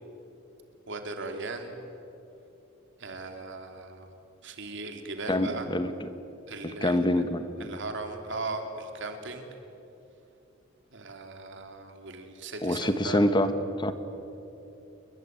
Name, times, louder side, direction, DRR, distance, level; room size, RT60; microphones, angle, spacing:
voice 1, 0.9-1.7 3.0-4.1 4.4-5.7 6.5-7.2 7.6-9.5 10.9-13.2, right 3 dB, 65° right, 5 dB, 3.2 m, -38 dB
voice 2, 5.3-6.1 6.8-7.7 12.6-13.5 13.8-13.9, left 1 dB, 25° left, 10 dB, 1.2 m, -26 dB
29.0 x 22.0 x 9.1 m, 2.9 s
head